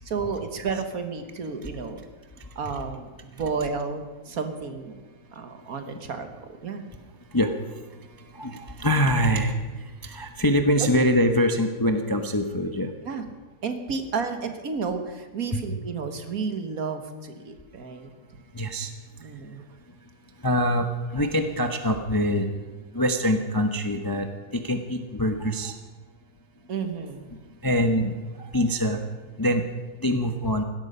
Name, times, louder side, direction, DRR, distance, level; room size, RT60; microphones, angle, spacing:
voice 1, 0.0-2.0 2.6-5.0 5.3-6.3 6.6-6.8 10.8-10.9 13.0-13.2 13.6-18.1 19.2-19.6 26.7-27.3, right 5 dB, 55° right, 8 dB, 1.7 m, -31 dB
voice 2, 7.3-12.9 18.5-18.9 20.4-22.5 22.9-25.8 27.6-29.0 29.4-29.6 30.0-30.6, equal, 20° left, 6 dB, 0.7 m, -24 dB
17.0 x 13.0 x 5.6 m, 1.3 s
omnidirectional pair, 1.9 m